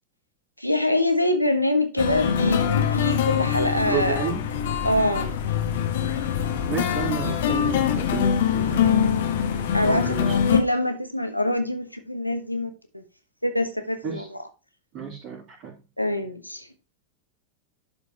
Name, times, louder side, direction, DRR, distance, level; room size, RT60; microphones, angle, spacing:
voice 1, 0.6-4.2 4.8-5.3 9.7-13.0 13.4-14.4 16.0-16.6, left 1 dB, 90° left, 1.2 m, -25 dB
sound 1, 2.0-10.6, left 8 dB, 55° left, 1.3 m, -24 dB
voice 2, 3.8-4.4 6.7-9.0 9.8-10.3 14.0-14.3 14.9-15.7, right 6 dB, 40° right, 3.0 m, -31 dB
11.5 x 5.1 x 3.0 m
figure-of-eight pair, 90°, 0 cm